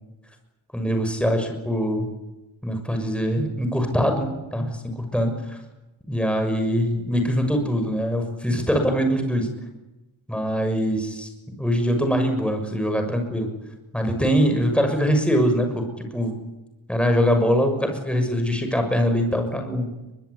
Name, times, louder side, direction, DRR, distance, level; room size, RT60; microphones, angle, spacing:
voice 1, 0.7-2.1 2.6-5.6 6.1-9.5 10.3-11.3 11.6-13.5 13.9-16.3 16.9-19.9, equal, ahead, 5 dB, 6.4 m, -23 dB
23.5 x 21.5 x 9.8 m, 1.0 s
cardioid pair, 75°, 47 cm